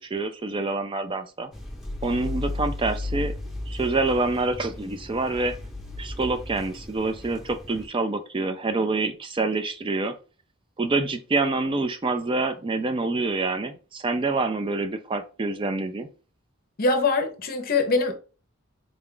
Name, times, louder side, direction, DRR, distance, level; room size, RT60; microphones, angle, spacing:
voice 1, 0.0-1.5 2.0-3.3 3.7-5.6 6.0-10.2 10.8-16.1, right 3 dB, 25° right, 0.3 m, -26 dB
sound 1, 1.5-7.8, left 2 dB, ahead, 1.0 m, -35 dB
voice 2, 16.8-18.1, left 3 dB, 45° left, 0.7 m, -23 dB
3.9 x 2.3 x 3.7 m
head